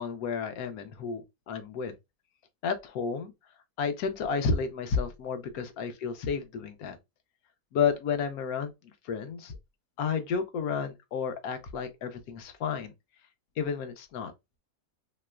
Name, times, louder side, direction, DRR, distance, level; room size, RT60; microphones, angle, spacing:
voice 1, 0.0-1.9 2.6-3.3 3.8-7.0 7.7-9.5 10.0-12.9 13.6-14.3, left 6 dB, 70° left, 1.0 m, -31 dB
3.2 x 2.9 x 2.2 m
omnidirectional pair, 1.7 m